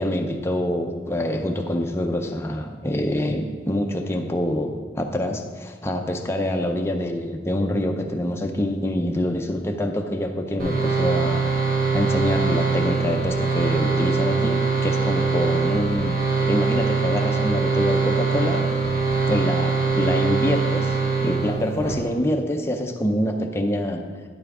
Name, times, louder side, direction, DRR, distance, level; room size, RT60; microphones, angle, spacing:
voice 1, 0.0-11.5 11.9-16.2 16.5-18.6 19.3-20.9 21.2-24.0, left 1 dB, 15° left, 2 dB, 0.6 m, -25 dB
sound 1, 10.6-21.9, right 4 dB, 50° right, 1.3 m, -22 dB
9.5 x 5.6 x 4.9 m, 1.5 s
head